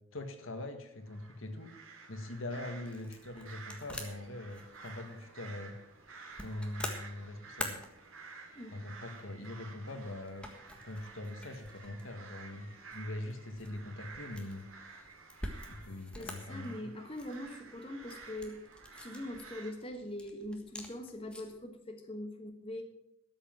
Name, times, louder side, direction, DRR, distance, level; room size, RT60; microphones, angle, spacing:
voice 1, 0.1-1.7 2.1-5.8 6.4-7.8 8.7-10.5 10.8-14.6 15.7-16.9, left 1 dB, 75° left, 7 dB, 1.7 m, -42 dB
sound 1, 1.1-19.7, right 4 dB, 75° right, 2.5 m, -52 dB
sound 2, 2.1-21.7, left 1 dB, 5° left, 1.5 m, -48 dB
voice 2, 16.1-18.6 19.0-22.8, left 1 dB, 25° left, 4 dB, 1.3 m, -42 dB
13.0 x 7.5 x 7.5 m, 0.78 s
head